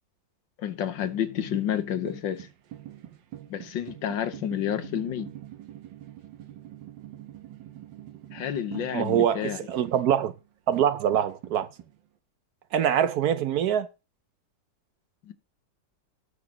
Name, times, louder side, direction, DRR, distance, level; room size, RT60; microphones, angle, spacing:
voice 1, 0.6-2.5 3.5-5.3 8.3-9.6 15.3-15.4, left 10 dB, 85° left, 1.7 m, -30 dB
sound 1, 0.8-10.4 10.7-12.0, right 12 dB, 90° right, 1.7 m, -44 dB
voice 2, 8.9-10.3 10.7-11.7 12.7-13.9, right 9 dB, 65° right, 1.0 m, -24 dB
18.5 x 6.2 x 2.9 m
omnidirectional pair, 2.0 m